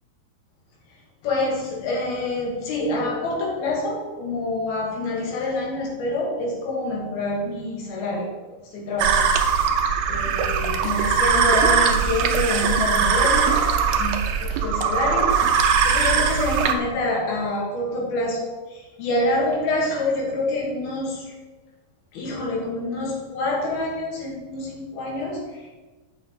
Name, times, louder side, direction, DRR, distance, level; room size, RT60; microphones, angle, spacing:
voice 1, 1.2-8.3 8.7-9.3 10.1-21.3 22.1-25.7, left 2 dB, 85° left, -3 dB, 3.8 m, -27 dB
sound 1, 9.0-16.7, right 6 dB, 80° right, 2.3 m, -20 dB
10.5 x 7.5 x 3.2 m, 1.2 s
omnidirectional pair, 4.3 m